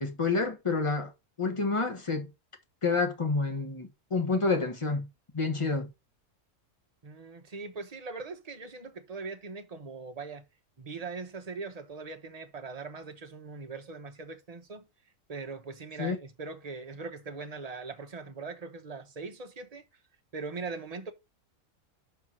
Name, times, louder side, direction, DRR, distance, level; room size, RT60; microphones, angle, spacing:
voice 1, 0.0-1.1 1.4-2.3 2.8-5.1 5.3-5.9 16.0-16.2, left 3 dB, 20° left, 1.4 m, -28 dB
voice 2, 7.0-10.4 10.8-14.9 15.3-19.8 20.3-21.1, right 4 dB, 30° right, 1.0 m, -41 dB
5.9 x 4.6 x 6.0 m
omnidirectional pair, 1.5 m